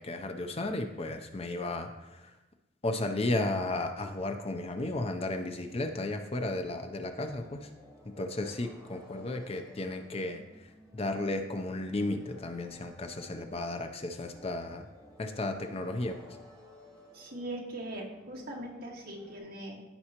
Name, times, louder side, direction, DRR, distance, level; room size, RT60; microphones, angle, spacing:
voice 1, 0.0-2.3 2.8-7.7 8.2-14.9 15.2-16.2, left 2 dB, 30° left, 6 dB, 0.5 m, -34 dB
sound 1, 4.8-19.4, left 1 dB, ahead, 3.3 m, -56 dB
voice 2, 17.1-19.8, right 1 dB, 50° right, -2 dB, 1.7 m, -40 dB
14.0 x 5.4 x 2.9 m, 1.0 s
head